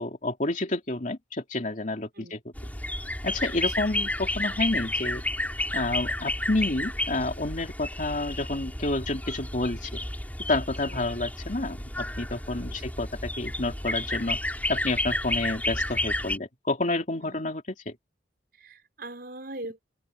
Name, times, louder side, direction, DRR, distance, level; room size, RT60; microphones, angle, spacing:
voice 1, 0.0-2.4 3.2-5.2 5.7-9.9 10.5-14.4 14.7-17.9, left 2 dB, 45° left, 2.9 m, -29 dB
sound 1, 2.6-16.4, left 1 dB, 10° left, 6.1 m, -31 dB
voice 2, 10.8-11.1 12.7-12.9 17.2-17.5 18.6-19.8, right 2 dB, 60° right, 5.6 m, -42 dB
head